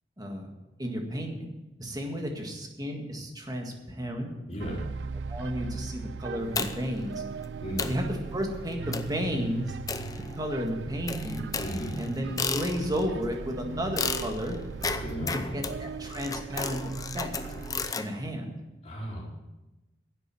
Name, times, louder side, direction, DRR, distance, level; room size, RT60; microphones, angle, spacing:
voice 1, 0.2-0.5 0.8-1.5 1.8-4.3 5.3-7.2 7.9-8.0 8.3-9.7 10.4-11.5 12.0-14.6 15.3-16.8 17.1-17.3 17.9-18.5, equal, 20° right, 2 dB, 1.8 m, -32 dB
voice 2, 4.5-4.8 7.6-7.9 11.6-11.9 15.0-15.6 18.8-19.2, equal, 35° left, -5 dB, 4.5 m, -35 dB
sound 1, 4.6-17.9, right 5 dB, 75° right, 0.4 m, -38 dB
sound 2, 6.6-7.0 7.4-7.5 7.8-8.1 8.9-9.2 9.9-10.6 11.1-13.1 14.0-18.1, left 4 dB, 20° left, 0.6 m, -34 dB
10.5 x 7.9 x 7.7 m, 1.0 s
head